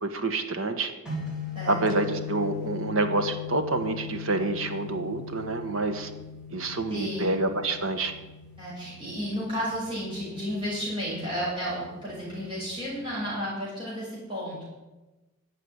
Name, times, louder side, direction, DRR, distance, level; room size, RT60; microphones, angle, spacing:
voice 1, 0.0-0.9 1.7-6.1 6.5-8.1, right 2 dB, 70° right, 8 dB, 1.5 m, -27 dB
sound 1, 1.1-13.1, left 6 dB, 5° right, 3.7 m, -40 dB
voice 2, 6.9-7.3 8.6-14.7, equal, 25° right, -7 dB, 6.3 m, -32 dB
12.0 x 7.8 x 9.8 m, 1.1 s
head